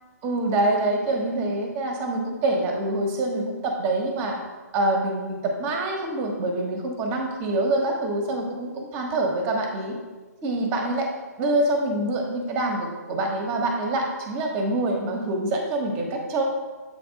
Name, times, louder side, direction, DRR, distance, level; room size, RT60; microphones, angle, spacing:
voice 1, 0.2-4.4 4.7-10.0 10.4-11.1 11.4-16.4, right 2 dB, 25° right, 2 dB, 1.1 m, -25 dB
7.8 x 3.5 x 5.0 m, 1.3 s
figure-of-eight pair, 130°, 9 cm